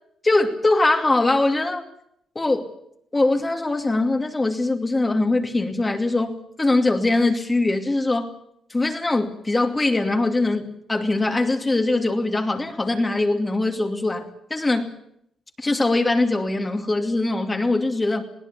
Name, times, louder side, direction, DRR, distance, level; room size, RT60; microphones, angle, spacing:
voice 1, 0.2-1.8 2.3-2.7 3.1-8.3 8.7-14.9 15.6-18.2, left 2 dB, 20° left, 4 dB, 2.6 m, -22 dB
21.0 x 17.0 x 8.3 m, 0.73 s
cardioid pair, 90°, 0 cm